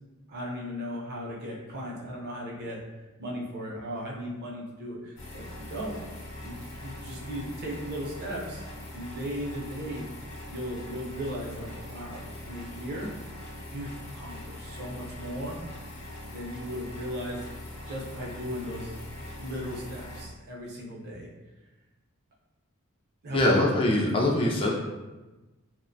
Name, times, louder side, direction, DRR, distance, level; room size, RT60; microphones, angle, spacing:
voice 1, 0.3-2.8 3.2-6.0 6.4-8.7 8.9-13.1 13.7-15.9 16.3-17.5 17.8-21.3 23.2-23.6, equal, 50° right, -3 dB, 0.6 m, -37 dB
sound 1, 5.2-20.2, left 1 dB, 80° left, 0.7 m, -42 dB
voice 2, 23.3-24.8, left 1 dB, 25° left, -2 dB, 0.3 m, -23 dB
2.4 x 2.1 x 2.5 m, 1.1 s
head